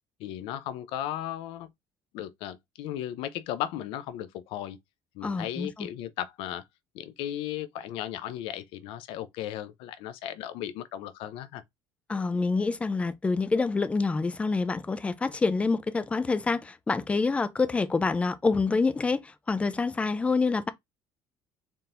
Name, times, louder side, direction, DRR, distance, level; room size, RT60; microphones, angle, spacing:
voice 1, 0.2-1.7 2.1-4.8 5.1-6.6 6.9-11.6, left 12 dB, 80° left, 0.6 m, -36 dB
voice 2, 5.2-5.9 12.1-19.2 19.5-20.7, left 4 dB, 15° left, 0.4 m, -27 dB
4.3 x 3.6 x 2.5 m
cardioid pair, 150°, 9 cm